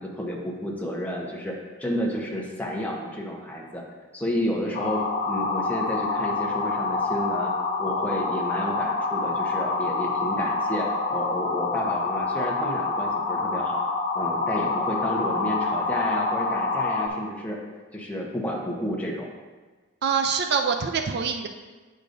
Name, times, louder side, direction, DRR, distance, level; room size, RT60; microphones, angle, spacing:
voice 1, 0.0-3.8 4.1-7.5 7.8-13.9 14.1-17.6 17.9-19.3, equal, 5° left, -2 dB, 0.9 m, -31 dB
sound 1, 4.7-17.1, left 3 dB, 45° left, 1.2 m, -27 dB
voice 2, 20.0-21.5, right 6 dB, 50° right, 5 dB, 0.4 m, -25 dB
8.9 x 6.5 x 2.6 m, 1.3 s
head